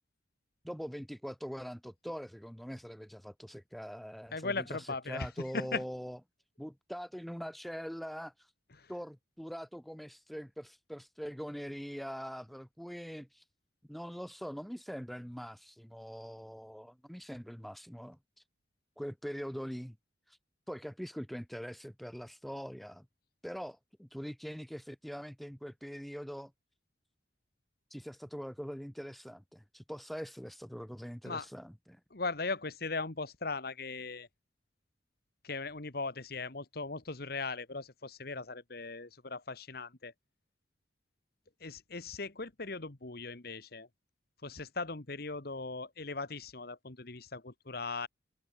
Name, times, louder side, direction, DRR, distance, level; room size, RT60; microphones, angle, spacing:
voice 1, 0.6-6.2 6.6-8.5 8.9-13.4 13.9-18.2 19.0-20.0 20.3-20.4 20.7-23.1 23.4-26.5 27.9-32.0, equal, ahead, 0.4 m, -43 dB
voice 2, 4.3-5.3 5.5-5.8 8.8-8.9 31.2-31.5 32.1-34.3 35.4-40.1 41.6-43.9 44.4-48.1, left 3 dB, 55° left, 1.6 m, -38 dB
open air
head